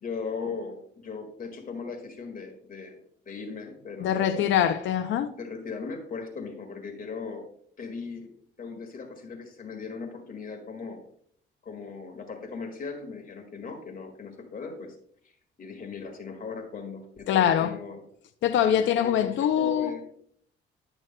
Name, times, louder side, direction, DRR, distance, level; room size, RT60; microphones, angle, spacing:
voice 1, 0.0-3.0 3.3-4.4 5.4-7.5 7.8-8.3 8.6-11.0 11.6-15.0 15.6-18.0 18.6-20.0, left 4 dB, 45° left, 1.9 m, -38 dB
voice 2, 4.0-5.3 17.3-17.7 18.4-19.9, left 10 dB, 70° left, 0.5 m, -23 dB
11.0 x 6.3 x 2.2 m
cardioid pair, 90°, 20 cm